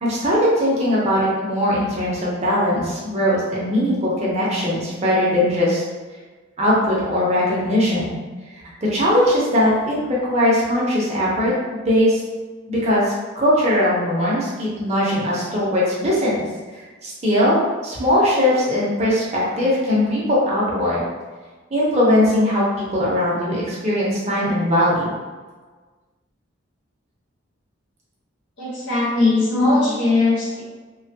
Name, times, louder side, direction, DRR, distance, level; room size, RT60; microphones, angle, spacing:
voice 1, 0.0-5.8 6.6-8.2 8.8-9.9 10.3-11.5 11.9-12.2 12.7-16.4 16.7-17.6 17.8-21.0 21.7-25.1 29.8-29.9, left 1 dB, 30° right, -6 dB, 0.6 m, -20 dB
voice 2, 28.6-30.6, left 2 dB, 55° left, -8 dB, 1.1 m, -19 dB
3.1 x 2.2 x 2.7 m, 1.4 s
head